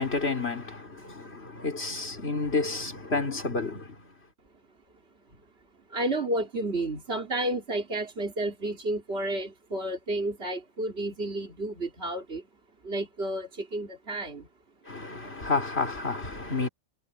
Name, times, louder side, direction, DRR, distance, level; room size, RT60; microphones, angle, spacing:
voice 1, 0.0-3.9 14.9-16.7, left 3 dB, 55° left, 3.8 m, -30 dB
voice 2, 5.9-12.4 12.8-14.5, right 1 dB, 50° right, 3.3 m, -31 dB
omnidirectional pair, 1.3 m